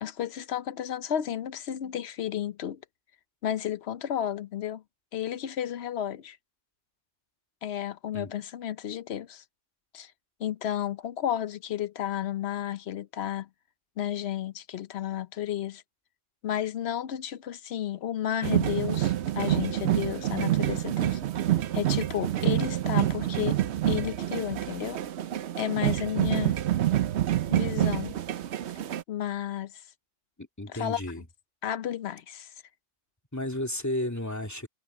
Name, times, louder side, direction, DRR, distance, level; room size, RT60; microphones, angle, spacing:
voice 1, 0.0-2.8 3.4-4.8 5.1-6.4 7.6-9.4 9.9-10.1 10.4-13.5 14.0-15.8 16.4-21.2 21.7-23.6 23.9-25.0 25.6-26.6 27.5-28.2 29.1-29.8 30.7-31.0 31.6-32.5, left 10 dB, 65° left, 0.9 m, -32 dB
sound 1, 18.4-29.0, right 12 dB, 70° right, 1.0 m, -27 dB
voice 2, 30.4-31.2 33.3-34.7, left 1 dB, 15° left, 2.7 m, -33 dB
omnidirectional pair, 1.2 m